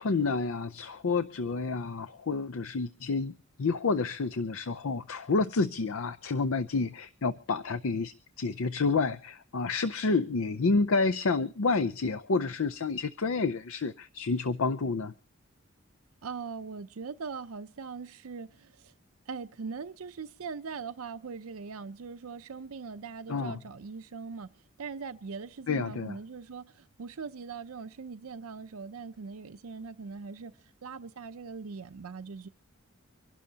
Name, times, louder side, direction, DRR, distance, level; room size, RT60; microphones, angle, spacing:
voice 1, 0.0-3.3 3.6-15.1 23.3-23.6 25.7-26.2, left 4 dB, 75° left, 0.6 m, -29 dB
voice 2, 16.2-18.9 19.3-24.5 24.8-30.5 30.8-32.5, right 5 dB, 90° right, 0.6 m, -41 dB
25.0 x 12.0 x 2.8 m
head